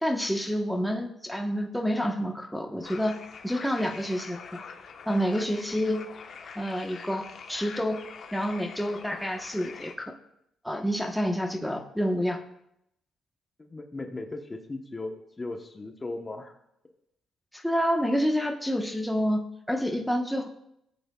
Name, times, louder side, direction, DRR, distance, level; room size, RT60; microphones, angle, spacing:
voice 1, 0.0-3.2 3.4-4.6 5.1-6.0 6.5-7.2 7.5-8.0 8.3-10.1 10.6-12.4 17.5-20.5, equal, ahead, 2 dB, 1.2 m, -28 dB
sound 1, 2.8-9.9, left 5 dB, 55° left, 1.1 m, -44 dB
voice 2, 13.6-16.6, left 2 dB, 25° left, 4 dB, 1.1 m, -37 dB
18.0 x 8.0 x 2.4 m, 0.78 s
cardioid pair, 90°, 0 cm